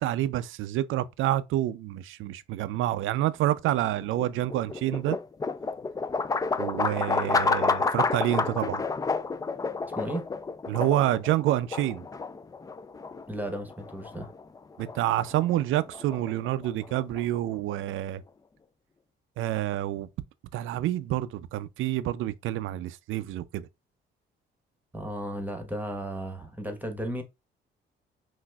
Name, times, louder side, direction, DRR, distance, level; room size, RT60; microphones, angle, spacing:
voice 1, 0.0-5.2 6.6-8.8 10.7-12.0 14.8-18.2 19.4-20.1 20.5-23.7, right 13 dB, 80° right, 0.4 m, -28 dB
sound 1, 3.8-17.9, left 4 dB, 20° left, 0.3 m, -31 dB
voice 2, 13.3-14.3 24.9-27.2, equal, 10° right, 1.0 m, -34 dB
5.9 x 2.6 x 2.3 m
cardioid pair, 90°, 20 cm